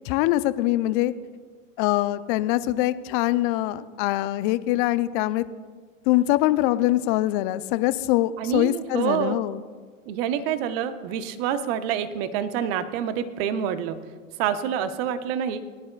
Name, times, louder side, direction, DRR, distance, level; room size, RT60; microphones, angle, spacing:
voice 1, 0.0-1.1 1.8-5.4 6.1-9.6, left 16 dB, 40° left, 14 dB, 0.6 m, -23 dB
voice 2, 8.4-9.4 10.1-14.0 14.4-15.6, right 9 dB, 45° right, 11 dB, 1.0 m, -27 dB
19.0 x 11.0 x 2.3 m, 1.5 s
hypercardioid pair, 100°, 41 cm